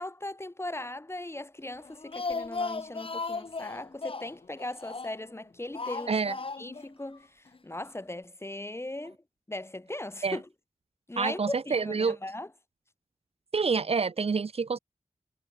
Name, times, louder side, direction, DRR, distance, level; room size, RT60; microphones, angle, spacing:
voice 1, 0.0-6.2 6.6-9.2 9.5-10.5 11.1-12.5, left 1 dB, 25° left, 2.6 m, -38 dB
Speech, 1.8-5.3 5.7-6.9 7.1-7.2 7.5-7.6, left 4 dB, 55° left, 1.7 m, -36 dB
voice 2, 11.2-12.2 13.5-14.8, right 5 dB, 60° right, 0.7 m, -27 dB
cardioid pair, 45°, 11 cm